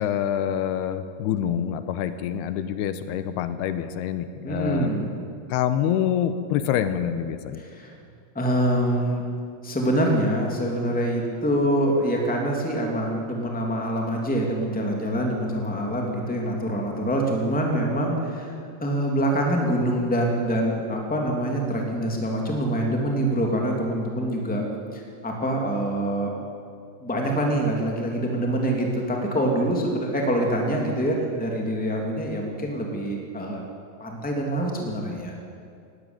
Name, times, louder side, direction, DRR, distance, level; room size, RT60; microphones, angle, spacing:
voice 1, 0.0-4.9 5.5-7.6, left 9 dB, 85° left, 11 dB, 2.8 m, -26 dB
voice 2, 4.4-5.1 7.6-7.9 8.3-9.2 9.6-18.5 18.8-24.6 24.9-26.4 27.0-33.6 34.0-35.3, right 1 dB, 5° left, 0 dB, 2.0 m, -25 dB
19.0 x 16.5 x 9.0 m, 2.4 s
omnidirectional pair, 4.7 m